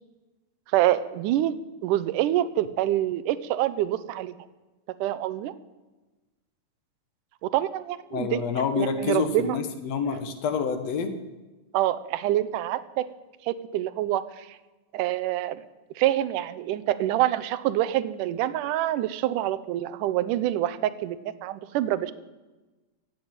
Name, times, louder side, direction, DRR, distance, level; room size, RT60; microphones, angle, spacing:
voice 1, 0.7-1.6 1.8-4.3 5.0-5.5 7.4-8.4 8.8-9.6 11.7-13.1 13.4-14.6 14.9-15.6 16.0-22.1, right 13 dB, 85° right, 15 dB, 2.2 m, -26 dB
voice 2, 8.1-11.1, left 6 dB, 60° left, 8 dB, 2.2 m, -27 dB
15.5 x 8.1 x 8.9 m, 1.2 s
omnidirectional pair, 3.6 m